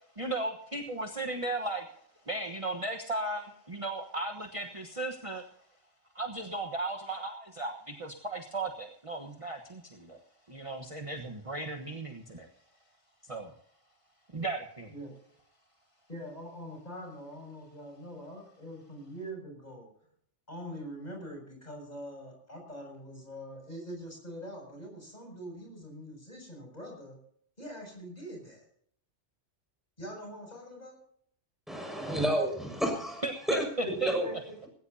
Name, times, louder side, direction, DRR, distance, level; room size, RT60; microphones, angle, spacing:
voice 1, 0.2-1.9 2.3-5.4 6.1-10.2 10.5-12.5 13.2-13.5 14.3-14.9 33.2-34.1, right 2 dB, 30° right, 3 dB, 1.4 m, -36 dB
voice 2, 16.1-19.9 20.5-27.1 27.6-28.6 30.0-31.0 33.8-34.5, equal, 35° left, 1 dB, 7.4 m, -43 dB
voice 3, 31.7-33.6 34.0-34.2, equal, ahead, 2 dB, 6.0 m, -30 dB
19.0 x 17.0 x 2.8 m, 0.63 s
omnidirectional pair, 1.2 m